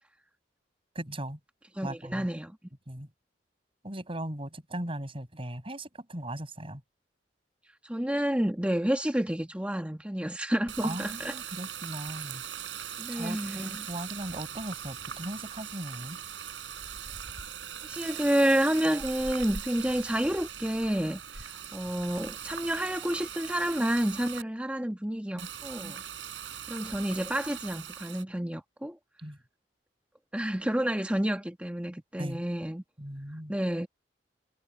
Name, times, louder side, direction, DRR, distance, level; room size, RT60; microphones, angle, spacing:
voice 1, 0.9-1.4 1.8-2.3 2.9-3.1 3.8-6.8 10.8-12.4 13.1-16.2 25.3-25.5 25.8-26.0 29.2-29.4 32.2-32.4 33.0-33.5, right 1 dB, 30° right, 6.7 m, -38 dB
voice 2, 1.7-2.6 7.8-11.3 13.0-13.9 17.8-26.0 26.7-29.0 30.3-32.8 33.5-33.9, equal, 5° right, 1.3 m, -29 dB
Water tap faucet, 10.7-24.4 25.4-28.2, right 8 dB, 90° right, 6.9 m, -40 dB
head